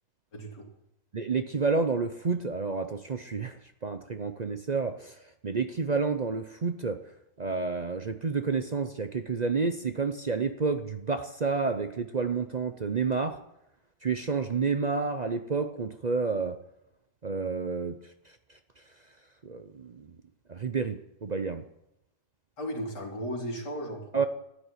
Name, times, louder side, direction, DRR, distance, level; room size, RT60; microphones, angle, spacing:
voice 1, 0.3-0.7 22.6-24.3, equal, 85° left, -2 dB, 3.5 m, -35 dB
voice 2, 1.1-7.0 7.4-13.4 14.0-16.6 17.2-18.0 18.3-18.4 19.4-20.2 20.5-21.6 24.1-24.2, right 4 dB, 50° right, 8 dB, 0.4 m, -30 dB
13.0 x 9.6 x 9.9 m, 0.84 s
omnidirectional pair, 1.8 m